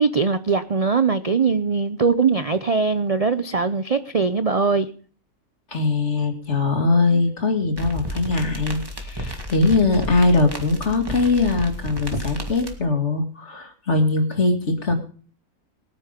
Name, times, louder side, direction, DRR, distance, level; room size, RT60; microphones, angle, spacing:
voice 1, 0.0-4.9, right 5 dB, 40° right, 0.5 m, -21 dB
voice 2, 5.7-14.9, left 3 dB, 45° left, 2.5 m, -21 dB
sound 1, 7.8-12.8, left 1 dB, 15° right, 2.4 m, -32 dB
20.0 x 9.8 x 5.2 m
omnidirectional pair, 1.6 m